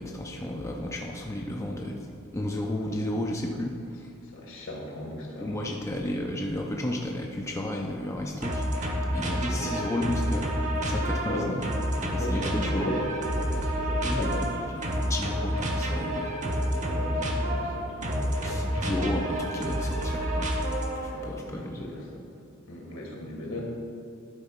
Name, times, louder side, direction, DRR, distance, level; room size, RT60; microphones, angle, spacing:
voice 1, 0.0-3.7 4.0-4.1 5.4-8.6 9.1-10.5 10.8-11.6 12.1-12.9 14.0-16.4 18.4-21.9, left 1 dB, 15° left, 0 dB, 0.5 m, -33 dB
voice 2, 4.3-5.6 6.0-6.3 9.4-9.7 11.3-11.6 12.1-13.0 13.5-14.5 16.8-18.9 21.1-22.2 22.7-23.6, left 1 dB, 70° left, -1 dB, 1.8 m, -37 dB
sound 1, 8.4-21.2, equal, 35° right, 1.0 m, -29 dB
11.5 x 4.2 x 5.7 m, 2.4 s
head